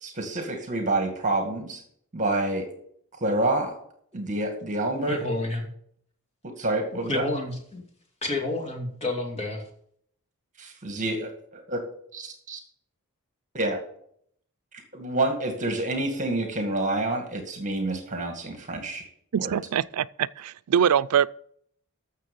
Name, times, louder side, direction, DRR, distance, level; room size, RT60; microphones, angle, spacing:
voice 1, 0.0-1.8 2.1-2.7 3.2-3.8 4.1-5.2 6.4-7.2 10.6-11.8 12.1-12.6 13.5-13.8 14.9-19.1 19.3-19.6, right 2 dB, 35° right, 2.1 m, -28 dB
voice 2, 5.1-5.6 7.1-7.8 8.2-9.7, left 2 dB, 30° left, 2.8 m, -30 dB
voice 3, 19.3-21.3, right 8 dB, 85° right, 0.4 m, -23 dB
14.0 x 6.8 x 5.4 m
head